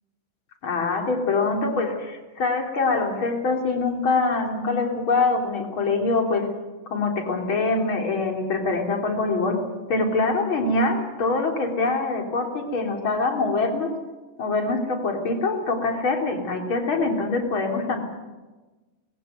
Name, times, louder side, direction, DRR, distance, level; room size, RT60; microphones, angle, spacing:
voice 1, 0.6-6.4 6.9-9.6 9.9-13.9 14.4-18.0, left 3 dB, 35° left, 2 dB, 3.7 m, -24 dB
20.5 x 16.0 x 9.3 m, 1.2 s
omnidirectional pair, 4.3 m